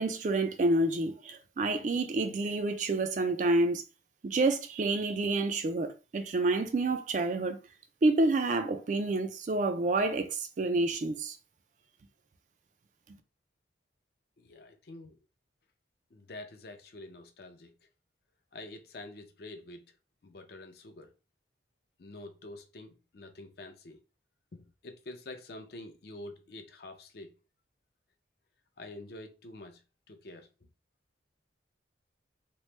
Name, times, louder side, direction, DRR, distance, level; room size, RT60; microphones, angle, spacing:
voice 1, 0.0-3.8 4.2-7.6 8.0-11.4, right 2 dB, 40° right, 0.3 m, -28 dB
voice 2, 14.4-15.2 16.1-17.7 18.5-19.8 20.2-21.1 22.0-24.0 24.5-27.3 28.8-29.8 30.1-30.5, left 2 dB, 55° left, 0.5 m, -47 dB
3.0 x 2.0 x 3.1 m
head